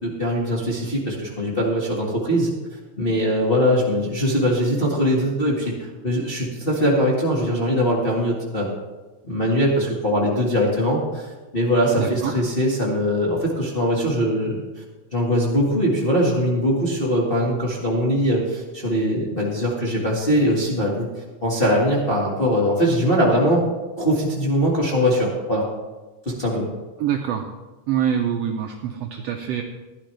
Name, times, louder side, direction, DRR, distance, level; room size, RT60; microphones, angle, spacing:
voice 1, 0.0-2.5 3.0-8.7 9.2-14.8 15.1-21.1 21.4-23.6 24.0-25.7 26.2-26.7, equal, 25° left, -4 dB, 1.2 m, -21 dB
voice 2, 11.9-12.3 27.0-27.5 27.9-29.6, right 9 dB, 75° right, 3 dB, 1.5 m, -25 dB
15.0 x 11.0 x 3.3 m, 1.2 s
omnidirectional pair, 3.7 m